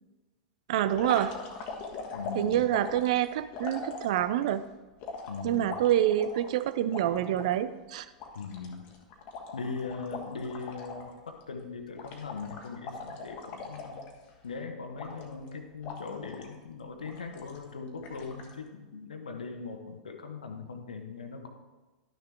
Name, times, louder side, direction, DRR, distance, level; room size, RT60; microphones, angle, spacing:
voice 1, 0.7-1.4 2.3-4.7 5.4-8.1, right 11 dB, 55° right, 13 dB, 0.5 m, -27 dB
sound 1, 0.9-4.5 5.0-7.5 7.9-8.0 8.2-11.1 11.4-11.6 12.0-14.5 15.0-15.5 15.8-16.5 17.0-17.6 18.0-18.5, left 3 dB, 40° left, 1.4 m, -41 dB
voice 2, 2.1-2.7 5.3-5.8 8.3-8.9 9.5-14.0 14.4-21.5, left 4 dB, 70° left, 6 dB, 1.0 m, -40 dB
12.0 x 6.4 x 3.4 m, 1.2 s
figure-of-eight pair, 90°, 4 cm